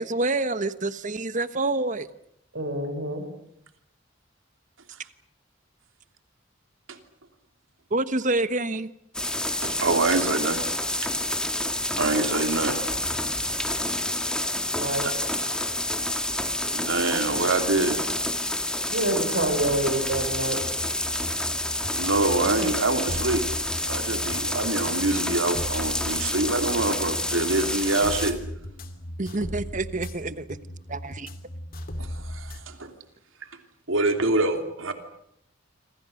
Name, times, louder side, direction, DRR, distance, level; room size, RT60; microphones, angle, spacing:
voice 1, 0.0-2.1 7.9-8.9 22.6-22.7 29.2-30.5 30.9-31.3, right 2 dB, 40° right, 13 dB, 1.3 m, -27 dB
voice 2, 2.5-3.2 14.7-15.0 18.9-20.6, right 1 dB, 70° right, 6 dB, 6.6 m, -27 dB
sound 1, 9.1-28.3, left 1 dB, 5° left, 2.1 m, -28 dB
voice 3, 9.6-10.6 10.9-11.3 12.0-13.1 14.9-15.5 16.7-18.1 22.0-23.5 23.8-28.4 32.0-32.9 33.9-34.9, right 2 dB, 90° right, 7 dB, 3.0 m, -26 dB
sound 2, 20.1-32.6, left 1 dB, 50° left, 2.8 m, -38 dB
27.0 x 26.5 x 6.6 m, 0.73 s
head